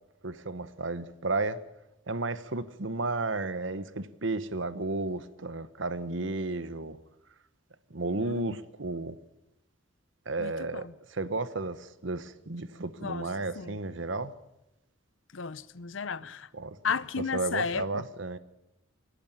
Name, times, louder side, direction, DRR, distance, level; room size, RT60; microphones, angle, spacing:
voice 1, 0.2-1.6 2.1-7.0 7.9-9.2 10.2-14.3 16.5-16.8 17.2-18.4, right 2 dB, 65° right, 1.2 m, -33 dB
voice 2, 8.2-8.6 10.4-10.9 13.0-13.3 13.6-13.8 15.3-16.5 16.8-18.0, left 5 dB, 70° left, 0.8 m, -34 dB
29.0 x 11.5 x 8.7 m
head